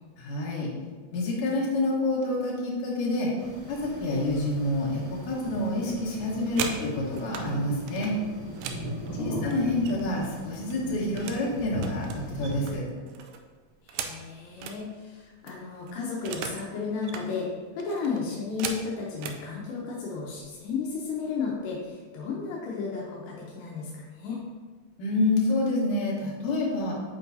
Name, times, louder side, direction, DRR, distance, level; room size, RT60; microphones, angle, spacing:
voice 1, 0.2-0.7 1.1-3.3 3.7-8.1 9.2-12.9 25.0-27.0, left 2 dB, 70° left, -4 dB, 2.8 m, -28 dB
sound 1, 3.4-12.7, equal, 55° right, 1.2 m, -38 dB
sound 2, 6.3-7.5 7.9-10.2 10.5-11.5 11.8-14.8 15.2-15.3 15.5-16.7 17.0-17.3 17.8-19.4 20.2-20.4 20.8-21.1 21.4-21.9, right 7 dB, 80° right, 1.9 m, -38 dB
voice 2, 9.0-9.4 13.8-17.5 17.8-24.4, left 5 dB, 85° left, -3 dB, 2.5 m, -33 dB
8.8 x 4.6 x 2.7 m, 1.4 s
omnidirectional pair, 4.1 m